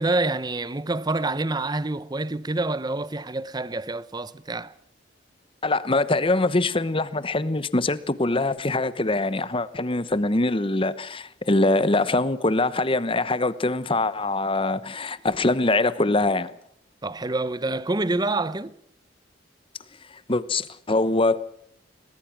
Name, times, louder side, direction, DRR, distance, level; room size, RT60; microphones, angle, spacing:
voice 1, 0.0-4.7 17.0-18.7, right 2 dB, 20° right, 0.7 m, -27 dB
voice 2, 5.6-16.5 20.1-21.4, left 2 dB, 30° left, 1.0 m, -23 dB
22.0 x 20.0 x 6.0 m
head